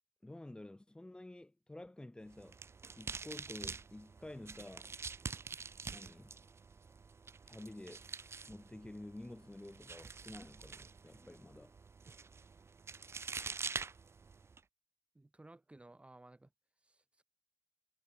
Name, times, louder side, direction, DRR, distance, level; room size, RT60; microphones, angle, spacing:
voice 1, 0.2-2.6 3.0-5.0 5.9-6.4 7.5-8.1 8.5-11.8, left 1 dB, 15° left, 4.1 m, -50 dB
sound 1, 2.3-14.6, right 5 dB, 45° right, 1.3 m, -47 dB
voice 2, 15.1-16.5 16.8-17.2, right 2 dB, 20° right, 4.6 m, -58 dB
cardioid pair, 80°, 6 cm